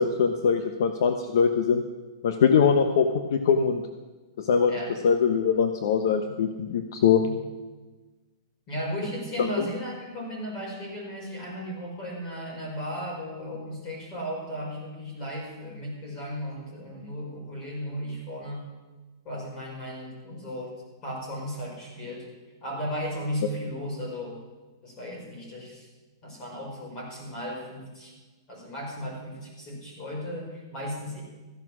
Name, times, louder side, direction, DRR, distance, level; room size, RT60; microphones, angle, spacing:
voice 1, 0.0-1.8 2.2-3.8 4.4-4.7 5.0-7.3 9.4-9.7, left 6 dB, 55° left, 6 dB, 1.0 m, -22 dB
voice 2, 8.7-18.6 19.3-20.7 21.0-22.3 22.6-24.4 24.8-25.9 26.2-28.1 28.5-31.2, equal, 20° left, -2 dB, 5.4 m, -35 dB
15.0 x 11.0 x 6.2 m, 1.2 s
hypercardioid pair, 165°, 2 cm